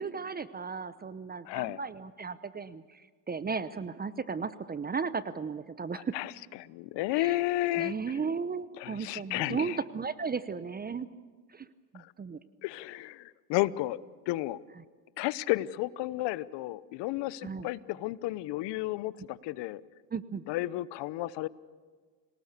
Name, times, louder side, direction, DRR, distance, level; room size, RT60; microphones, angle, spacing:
voice 1, 0.0-6.2 7.1-7.4 7.8-11.1 11.5-11.7 11.9-12.4 14.8-14.9 17.4-17.7 20.1-20.4, right 5 dB, 20° right, 14 dB, 0.8 m, -35 dB
voice 2, 1.4-1.8 6.1-6.3 6.7-7.9 8.8-9.8 12.6-14.0 14.3-14.6 15.2-19.8 20.5-21.5, left 17 dB, 60° left, 18 dB, 1.0 m, -32 dB
28.5 x 19.0 x 6.8 m, 1.5 s
supercardioid pair, 95°, 47 cm